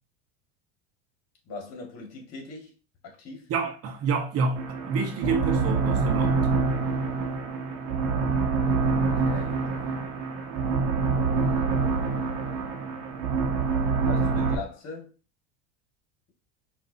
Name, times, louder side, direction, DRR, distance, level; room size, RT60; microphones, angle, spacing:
voice 1, 1.5-2.7 3.0-3.4 9.1-10.1 11.4-12.9 14.1-15.1, left 3 dB, 50° left, 2.0 m, -41 dB
voice 2, 3.5-6.5, right 4 dB, 45° right, 1.0 m, -28 dB
sound 1, 4.6-14.6, right 4 dB, 70° right, 1.2 m, -26 dB
5.6 x 2.8 x 2.8 m
supercardioid pair, 95°, 33 cm